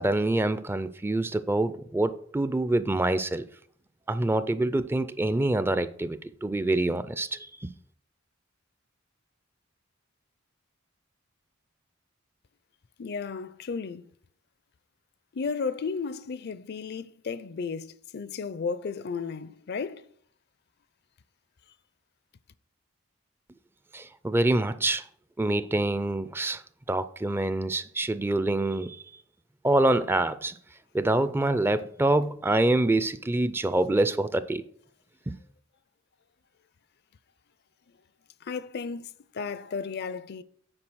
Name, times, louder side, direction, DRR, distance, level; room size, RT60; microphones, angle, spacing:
voice 1, 0.0-3.4 4.1-7.7 23.9-25.0 25.4-26.6 26.9-29.0 29.6-30.5 30.9-34.6 35.3-35.4, right 2 dB, 10° right, 0.3 m, -26 dB
voice 2, 13.0-14.1 15.3-20.0 38.5-39.1 39.3-40.4, left 5 dB, 55° left, 0.5 m, -34 dB
8.8 x 4.7 x 6.2 m
head